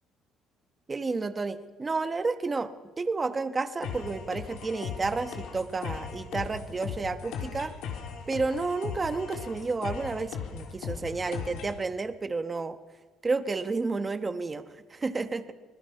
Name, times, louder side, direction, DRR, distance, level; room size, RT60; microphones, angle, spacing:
voice 1, 0.9-2.7 3.0-7.7 8.3-12.8 13.2-15.5, right 3 dB, 20° right, 10 dB, 1.1 m, -31 dB
sound 1, 3.8-11.8, left 7 dB, 75° left, 3.5 m, -38 dB
25.0 x 20.0 x 5.9 m, 1.3 s
cardioid pair, 130°, 0 cm